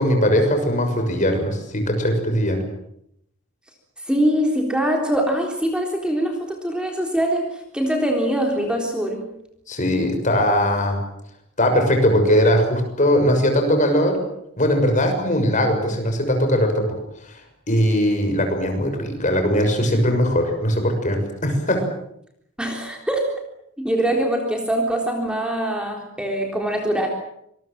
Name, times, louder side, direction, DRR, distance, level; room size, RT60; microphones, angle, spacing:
voice 1, 0.0-2.6 9.7-11.0 11.6-14.2 14.6-16.9 17.7-21.8, equal, 35° left, 5 dB, 6.2 m, -20 dB
voice 2, 4.1-9.3 22.6-23.3 23.8-27.1, right 1 dB, 5° right, 1 dB, 3.8 m, -23 dB
26.5 x 22.0 x 7.6 m, 0.75 s
head